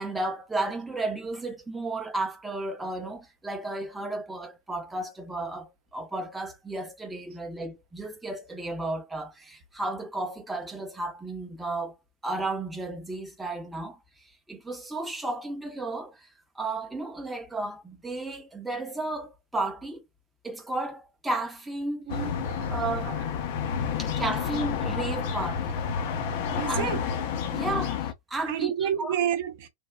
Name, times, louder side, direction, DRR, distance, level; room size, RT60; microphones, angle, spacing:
voice 1, 0.0-12.0 12.2-14.0 14.5-16.3 16.5-20.0 20.4-22.1 22.7-23.2 24.0-25.8 26.7-27.0 27.5-29.2, right 2 dB, 10° right, 0.7 m, -33 dB
sound 1, 22.1-28.1, left 7 dB, 50° left, 0.6 m, -30 dB
voice 2, 22.1-22.7 23.1-23.2 23.6-23.8 26.2-27.0 27.5-27.6 28.5-29.7, right 9 dB, 55° right, 0.7 m, -31 dB
3.4 x 2.1 x 2.3 m
figure-of-eight pair, 100°, 0 cm